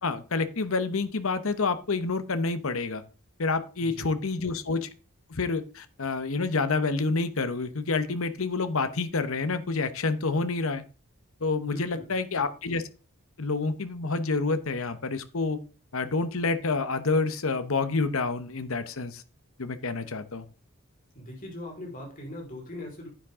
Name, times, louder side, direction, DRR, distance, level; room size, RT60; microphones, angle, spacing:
voice 1, 0.0-3.0 3.4-4.9 5.3-10.8 11.4-12.8 13.4-15.6 15.9-19.2 19.6-20.5, left 3 dB, 65° left, 11 dB, 1.0 m, -28 dB
voice 2, 3.8-4.1 11.6-12.1 21.1-23.1, left 1 dB, 40° left, -1 dB, 4.5 m, -40 dB
9.9 x 8.7 x 3.6 m, 0.33 s
head